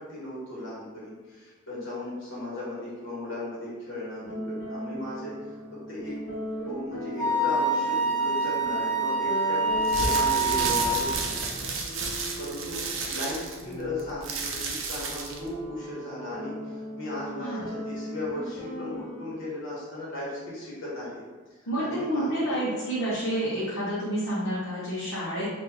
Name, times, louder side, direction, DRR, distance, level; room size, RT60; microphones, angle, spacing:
voice 1, 0.0-5.4 5.9-6.2 6.6-21.2 21.6-22.6, left 1 dB, 55° left, -7 dB, 1.2 m, -37 dB
sound 1, 4.2-19.3, equal, 40° left, 1.0 m, -39 dB
Wind instrument woodwind instrument, 7.2-11.0, right 2 dB, 5° right, 0.6 m, -25 dB
sound 2, 9.8-15.5, right 4 dB, 55° right, 0.5 m, -32 dB
voice 2, 21.7-25.5, right 1 dB, 70° left, -9 dB, 0.9 m, -29 dB
3.1 x 2.5 x 3.6 m, 1.3 s
head